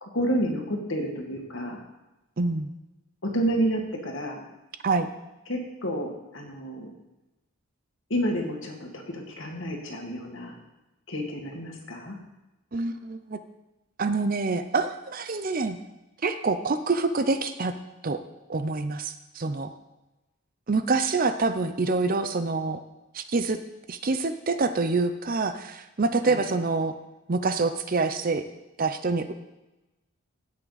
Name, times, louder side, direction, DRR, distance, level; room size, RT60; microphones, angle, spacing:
voice 1, 0.0-1.8 3.2-4.5 5.5-6.9 8.1-10.5 11.1-12.2 26.2-26.5, right 1 dB, 60° left, 1 dB, 1.9 m, -30 dB
voice 2, 2.4-2.7 4.8-5.1 12.7-13.4 14.0-15.8 16.2-17.7 18.0-18.2 18.5-19.7 20.7-22.8 23.1-23.6 23.9-26.9 27.3-28.4 28.8-29.3, right 3 dB, 40° right, 10 dB, 0.6 m, -26 dB
16.5 x 6.0 x 4.0 m, 1.0 s
head